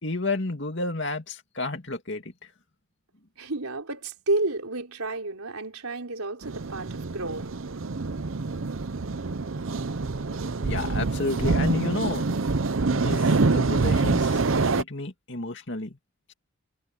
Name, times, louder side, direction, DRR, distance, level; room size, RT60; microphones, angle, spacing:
voice 1, 0.0-2.3 10.6-12.3 12.9-14.4 14.8-16.0, left 2 dB, 55° left, 2.5 m, -31 dB
voice 2, 3.4-7.6, right 2 dB, 90° right, 4.1 m, -31 dB
sound 1, 6.4-14.8, right 3 dB, 65° right, 0.7 m, -26 dB
head